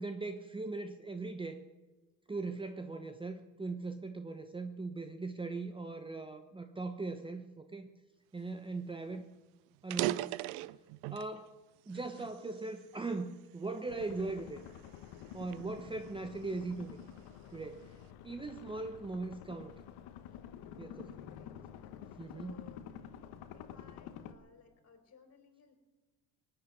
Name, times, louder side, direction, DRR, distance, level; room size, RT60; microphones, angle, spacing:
voice 1, 0.0-1.6 2.3-7.9 8.3-9.3 9.8-10.5 11.1-11.6 11.9-14.6 15.3-17.0 17.5-17.9 18.2-19.7 20.8-21.1 22.2-22.7, right 3 dB, 15° right, 8 dB, 0.9 m, -40 dB
sound 1, 8.7-8.8 9.1-9.3 9.8-11.4 11.9-13.2 13.8-14.0 14.7-16.7, right 17 dB, 80° right, 0.6 m, -38 dB
sound 2, 13.9-24.3, left 9 dB, 70° left, 1.3 m, -50 dB
voice 2, 20.9-21.6 22.3-23.0 23.5-25.7, left 6 dB, 40° left, 6 dB, 3.9 m, -61 dB
18.5 x 7.9 x 9.4 m, 1.2 s
supercardioid pair, 85°, 39 cm